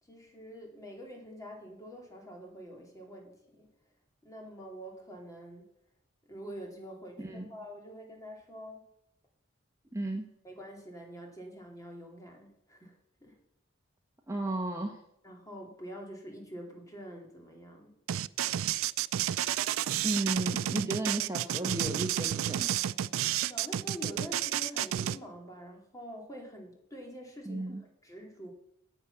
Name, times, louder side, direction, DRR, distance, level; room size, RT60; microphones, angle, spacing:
voice 1, 0.0-3.7 4.2-5.7 6.2-8.8 10.4-13.4 15.2-18.0 20.5-20.7 20.9-21.0 23.5-27.7 28.0-28.5, equal, 15° left, 1 dB, 2.5 m, -46 dB
voice 2, 7.2-7.5 9.9-10.3 14.3-15.0 20.0-22.7 27.5-27.8, right 1 dB, 15° right, 2 dB, 1.0 m, -34 dB
sound 1, 18.1-25.2, right 11 dB, 85° right, 0.4 m, -31 dB
9.4 x 8.0 x 7.0 m, 0.75 s
head